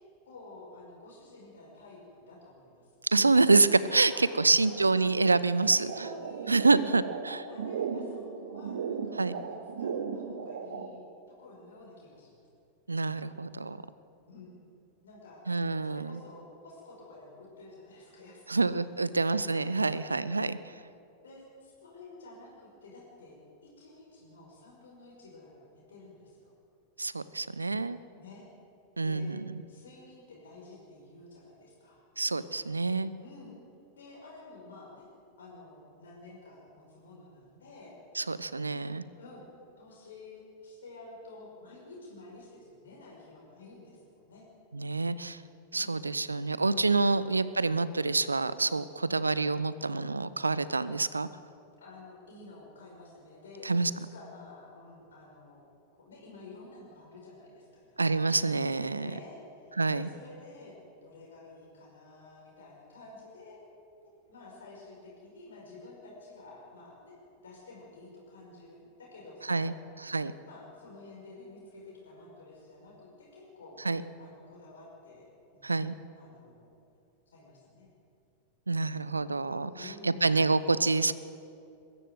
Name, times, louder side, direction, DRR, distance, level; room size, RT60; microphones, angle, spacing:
voice 1, 0.2-2.9 4.1-4.9 5.6-6.9 7.5-12.4 14.3-14.6 15.0-15.4 15.8-18.7 19.2-19.4 19.8-20.1 21.2-26.5 28.2-28.5 29.0-29.3 29.7-32.0 33.2-33.6 33.9-35.1 35.4-37.9 39.1-39.5 39.8-44.5 45.7-46.0 49.0-49.2 51.8-55.7 55.9-58.3 59.0-63.6 64.0-67.2 67.4-69.8 70.4-73.8 74.2-75.3 75.5-75.8 76.2-76.7 77.3-77.9 79.7-80.7, left 2 dB, 65° left, -3 dB, 5.5 m, -50 dB
voice 2, 3.0-5.9 6.5-7.5 9.2-9.3 12.9-13.8 15.5-16.2 18.5-20.6 27.0-28.0 29.0-29.5 32.2-33.1 38.2-39.0 44.7-45.4 45.7-51.3 53.6-53.9 58.0-59.1 59.8-60.1 69.5-69.7 70.0-70.3 73.8-74.0 75.6-75.9 78.7-81.1, right 3 dB, 80° right, 16 dB, 0.7 m, -27 dB
sound 1, 5.8-10.9, right 6 dB, 65° right, 1.6 m, -36 dB
21.5 x 14.0 x 9.3 m, 2.6 s
figure-of-eight pair, 90°, 0 cm